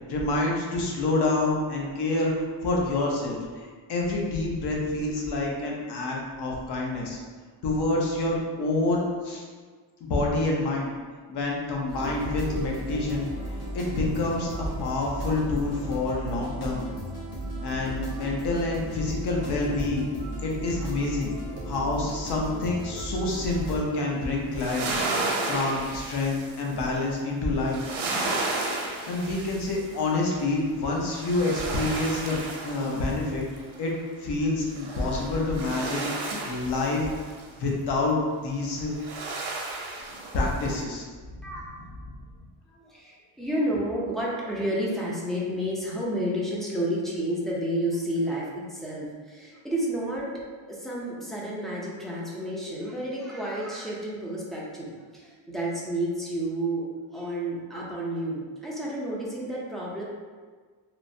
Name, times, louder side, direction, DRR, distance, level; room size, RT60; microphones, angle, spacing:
voice 1, 0.1-7.2 7.6-9.4 10.0-10.9 11.3-16.8 17.6-20.1 20.4-21.3 21.6-25.0 25.5-27.8 29.0-33.4 33.8-33.9 34.2-36.1 36.5-37.1 37.6-38.9 40.3-41.0 42.1-42.2, left 2 dB, 55° left, -2 dB, 0.7 m, -27 dB
sound 1, 11.9-23.8, right 1 dB, 90° left, 0.9 m, -35 dB
sound 2, 23.3-23.7 24.3-27.0 27.6-30.4 30.9-33.8 34.7-37.4 38.7-40.8, right 2 dB, 70° right, 0.7 m, -33 dB
voice 2, 42.7-56.9 57.1-60.0, right 1 dB, ahead, -6 dB, 0.5 m, -31 dB
3.0 x 2.1 x 2.6 m, 1.5 s
cardioid pair, 110°, 49 cm